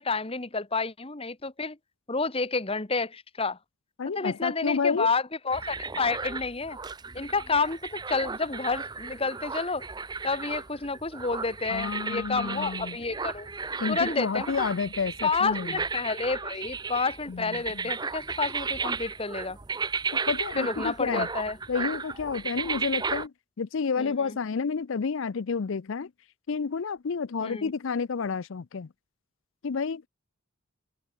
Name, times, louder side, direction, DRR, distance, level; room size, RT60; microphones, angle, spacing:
voice 1, 0.0-1.8 2.1-3.6 4.1-6.8 7.1-9.9 10.2-13.5 13.9-14.7 15.2-19.6 20.6-21.6 24.0-24.1 27.4-27.7, left 4 dB, 25° left, 1.1 m, -29 dB
voice 2, 4.0-5.1 11.7-13.0 13.8-15.8 17.3-17.9 20.1-21.3 21.7-26.1 26.5-28.9 29.6-30.0, left 5 dB, 60° left, 0.5 m, -30 dB
sound 1, 5.5-23.3, right 4 dB, 20° right, 0.5 m, -34 dB
head